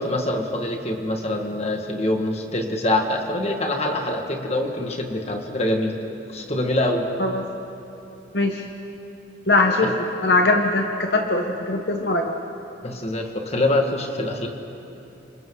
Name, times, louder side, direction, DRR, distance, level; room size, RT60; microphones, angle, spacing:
voice 1, 0.0-5.9 6.3-7.1 9.8-9.9 12.8-14.5, left 1 dB, 35° left, 3 dB, 1.8 m, -24 dB
voice 2, 9.5-9.9 10.2-12.3, left 2 dB, 60° left, 3 dB, 1.2 m, -20 dB
29.0 x 27.0 x 3.9 m, 3.0 s
head